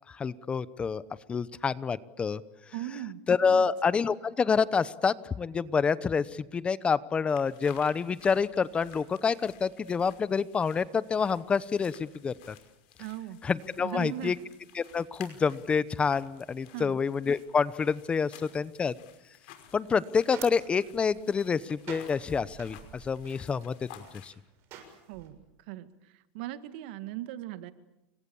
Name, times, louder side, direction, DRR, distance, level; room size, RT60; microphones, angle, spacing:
voice 1, 0.1-1.0 1.3-2.4 3.3-12.5 13.4-14.3 14.7-18.9 19.7-23.7 24.2-24.3, left 5 dB, 20° left, 17 dB, 0.9 m, -28 dB
voice 2, 2.7-3.2 3.5-3.7 13.0-13.4 13.8-14.4 16.7-17.0 25.1-25.4 25.7-27.7, right 14 dB, 70° right, 11 dB, 1.9 m, -38 dB
sound 1, 7.3-24.3, left 11 dB, 70° left, 5.3 m, -55 dB
sound 2, 19.7-25.3, right 8 dB, 50° right, 6.9 m, -49 dB
29.5 x 24.5 x 7.2 m, 0.89 s
supercardioid pair, 140°, 6 cm